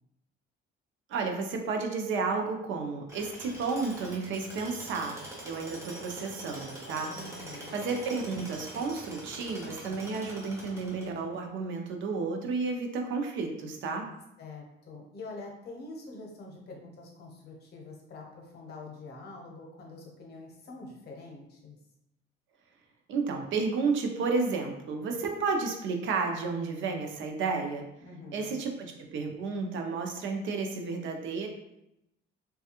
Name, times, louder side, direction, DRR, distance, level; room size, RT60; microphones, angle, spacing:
voice 1, 1.1-5.2 5.4-7.1 7.7-14.1 23.1-27.9 28.3-31.5, right 4 dB, 65° right, 3 dB, 0.5 m, -32 dB
Tools, 3.1-11.4, right 1 dB, 15° right, 0.5 m, -44 dB
voice 2, 7.1-7.9 14.4-21.8 28.0-28.6, left 3 dB, 50° left, 0 dB, 0.7 m, -45 dB
3.1 x 2.3 x 2.8 m, 0.84 s
cardioid pair, 165°, 21 cm